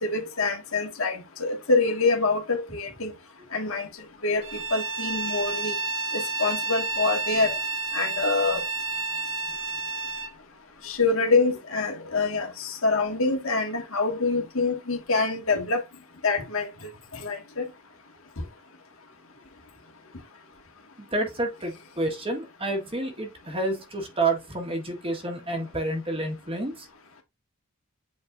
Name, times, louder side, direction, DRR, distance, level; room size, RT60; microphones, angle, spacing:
voice 1, 0.0-3.1 3.5-3.9 4.2-4.4 4.7-5.8 6.1-7.6 7.9-8.6 10.8-15.8 16.2-16.7 17.2-17.7, left 3 dB, 65° left, 1.9 m, -25 dB
Bowed string instrument, 4.4-10.3, right 3 dB, 70° right, 1.6 m, -30 dB
voice 2, 21.1-26.9, right 2 dB, 25° right, 1.6 m, -29 dB
8.4 x 4.7 x 2.6 m
head